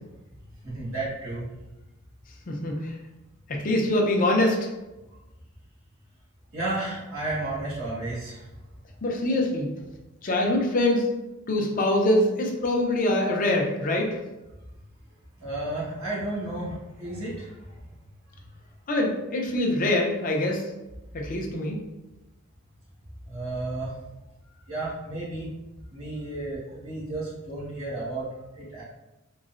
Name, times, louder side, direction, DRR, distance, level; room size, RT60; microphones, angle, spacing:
voice 1, 0.6-1.5 6.5-8.5 15.4-17.6 23.3-23.9 24.7-25.5 25.9-28.3 28.5-28.8, right 2 dB, 90° right, -8 dB, 1.5 m, -32 dB
voice 2, 2.5-2.9 3.5-4.6 9.0-9.9 10.2-11.1 11.5-14.1 18.9-20.6 21.1-21.8, left 1 dB, 40° left, 0 dB, 0.5 m, -24 dB
3.8 x 2.1 x 2.4 m, 1.0 s
head